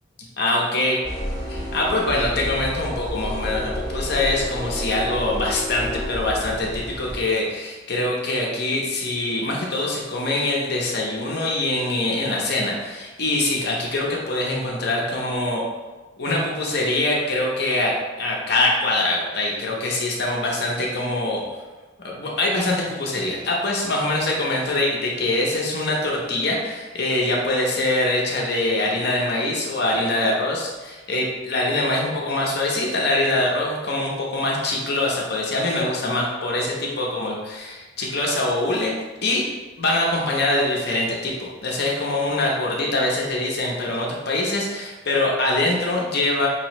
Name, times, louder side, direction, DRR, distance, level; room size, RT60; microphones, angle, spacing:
voice 1, 0.4-1.0 1.5-15.6 16.2-21.4 22.0-38.9 39.2-39.5 39.8-46.5, left 2 dB, 60° left, -2 dB, 0.8 m, -23 dB
sound 1, 1.0-7.2, equal, 15° left, 1.4 m, -30 dB
5.2 x 3.0 x 3.0 m, 1.2 s
head